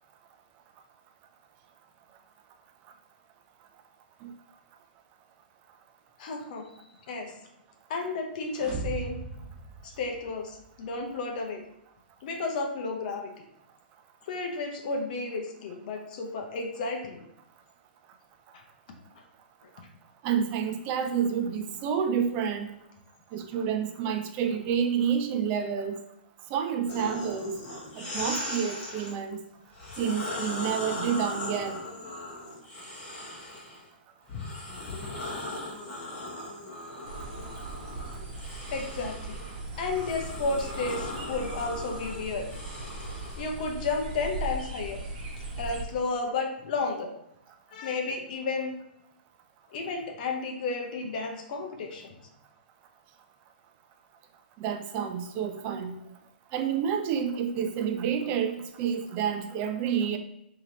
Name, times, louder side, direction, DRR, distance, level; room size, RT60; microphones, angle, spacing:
voice 1, 6.2-6.7 7.1-7.4 7.9-9.2 9.8-11.6 12.2-13.3 14.2-17.2 18.5-18.6 19.8-19.9 38.7-39.4 39.8-42.5 43.4-45.0 45.4-47.1 47.7-48.7 49.7-52.1, left 3 dB, 50° left, 2 dB, 0.7 m, -32 dB
sound 1, 8.5-10.6, right 4 dB, 10° right, 1.5 m, -38 dB
voice 2, 20.2-22.7 23.3-26.0 26.5-27.5 28.0-29.4 30.0-31.8 35.9-36.0 54.6-56.0 56.5-60.2, right 7 dB, 30° right, 6 dB, 0.4 m, -29 dB
sound 2, 26.9-29.1 29.7-33.8 34.3-43.4, left 2 dB, 30° left, 1.4 m, -38 dB
sound 3, 37.0-45.8, right 2 dB, 45° right, 1.1 m, -39 dB
3.1 x 2.9 x 3.9 m, 0.80 s
hypercardioid pair, 150°, 6 cm